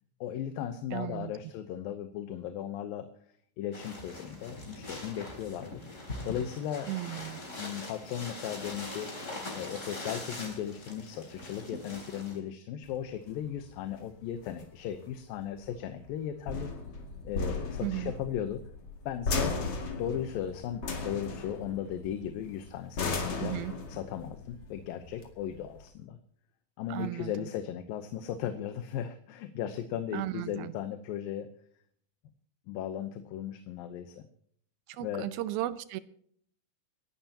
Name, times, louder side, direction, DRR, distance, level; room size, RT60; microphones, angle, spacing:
voice 1, 0.2-3.1 3.6-5.8 6.2-6.9 7.6-16.7 17.2-18.6 19.1-19.6 20.0-23.6 23.9-26.2 26.8-31.5 32.7-34.3 35.0-35.3, left 10 dB, 80° left, 2.6 m, -36 dB
voice 2, 0.9-1.3 6.9-7.4 17.8-18.1 23.4-23.8 26.9-27.5 30.1-30.7 34.9-36.0, right 15 dB, 90° right, 2.6 m, -35 dB
sound 1, 3.7-12.4, left 2 dB, 20° left, 3.4 m, -42 dB
sound 2, 12.9-25.9, left 3 dB, 45° left, 2.9 m, -37 dB
29.0 x 11.5 x 2.9 m
omnidirectional pair, 4.2 m